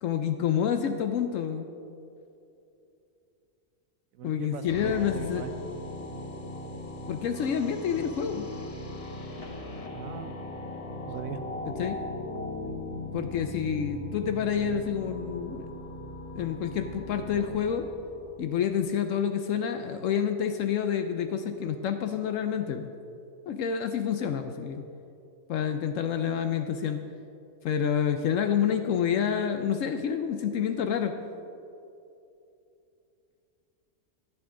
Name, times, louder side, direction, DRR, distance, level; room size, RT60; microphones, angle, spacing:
voice 1, 0.0-1.7 4.2-5.5 7.1-8.5 11.6-12.0 13.1-15.7 16.4-17.9 18.4-22.9 23.5-24.8 25.5-27.0 27.6-31.1, left 8 dB, 75° left, 7 dB, 0.9 m, -28 dB
voice 2, 4.2-5.5 9.9-10.4 11.0-11.4 11.7-11.8 12.6-12.7, right 7 dB, 85° right, 9 dB, 1.2 m, -39 dB
sound 1, 4.7-18.8, left 2 dB, 30° left, 0.8 m, -39 dB
14.5 x 8.7 x 3.7 m, 2.7 s
omnidirectional pair, 1.4 m